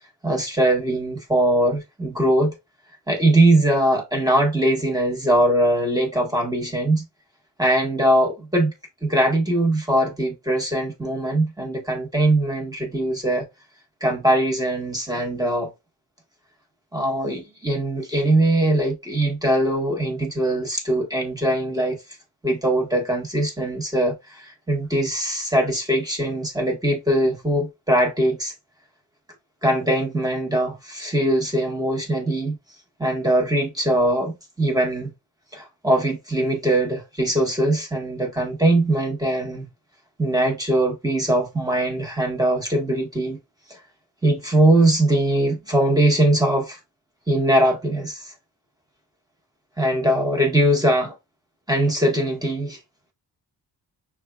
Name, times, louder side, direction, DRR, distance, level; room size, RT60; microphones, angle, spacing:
voice 1, 0.2-2.5 3.1-7.0 7.6-8.7 9.0-13.5 14.0-15.7 16.9-22.0 22.4-28.5 29.6-32.6 33.0-35.1 35.5-39.7 40.2-43.4 43.7-43.8 44.2-46.8 47.3-48.3 49.8-51.2 51.7-52.8, right 1 dB, 10° right, 1.0 m, -21 dB
6.4 x 2.2 x 2.2 m
wide cardioid pair, 130°, 41 cm